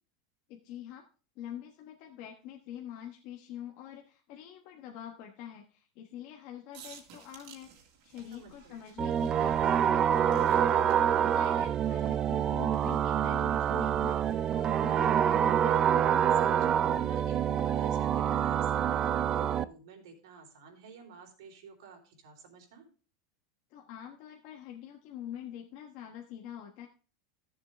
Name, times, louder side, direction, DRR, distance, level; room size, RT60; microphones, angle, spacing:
voice 1, 0.5-1.0 1.4-7.7 8.0-14.2 14.5-15.9 23.7-26.9, left 10 dB, 50° left, 2 dB, 1.2 m, -45 dB
sound 1, 6.7-18.2, right 6 dB, 50° right, 2.2 m, -56 dB
voice 2, 8.3-8.8 16.3-22.8, right 5 dB, 75° right, 3 dB, 3.5 m, -50 dB
sound 2, 9.0-19.6, right 9 dB, 25° right, 0.3 m, -26 dB
14.0 x 7.2 x 3.4 m, 0.37 s
supercardioid pair, 150°, 3 cm